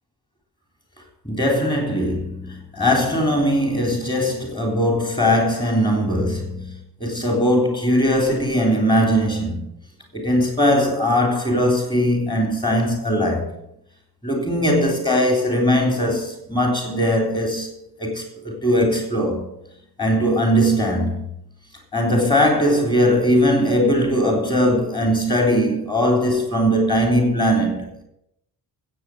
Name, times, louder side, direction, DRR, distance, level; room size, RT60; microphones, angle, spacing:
voice 1, 1.2-9.7 10.1-13.5 14.2-17.7 18.0-19.5 20.0-21.2 21.9-28.0, equal, 10° left, 3.7 m, -20 dB
14.0 x 8.6 x 7.9 m
wide cardioid pair, 180°, 39 cm